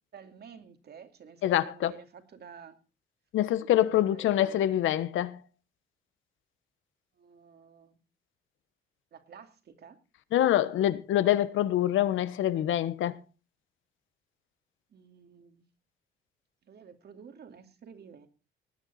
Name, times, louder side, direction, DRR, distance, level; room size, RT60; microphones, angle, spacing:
voice 1, 0.1-2.8 3.8-4.6 7.2-8.0 9.1-10.0 14.9-15.6 16.7-18.3, right 6 dB, 55° right, 2.4 m, -51 dB
voice 2, 1.4-1.9 3.3-5.4 10.3-13.2, left 12 dB, 80° left, 1.2 m, -25 dB
19.0 x 9.4 x 4.1 m
cardioid pair, 90°, 20 cm